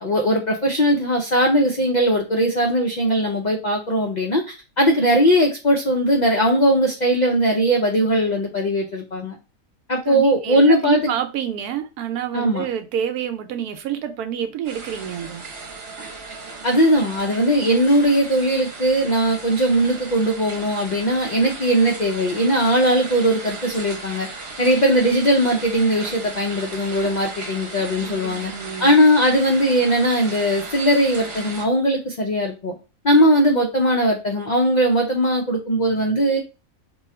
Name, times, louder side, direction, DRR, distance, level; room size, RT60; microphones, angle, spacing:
voice 1, 0.0-9.4 9.9-11.1 12.3-12.6 16.6-24.3 24.6-28.5 28.8-32.7 33.0-36.4, equal, 70° left, 0.4 m, -19 dB
voice 2, 10.1-15.4 28.0-28.9, right 9 dB, 85° right, 1.1 m, -28 dB
sound 1, 14.6-31.6, right 3 dB, 50° right, 1.0 m, -36 dB
3.0 x 2.3 x 4.2 m
omnidirectional pair, 1.6 m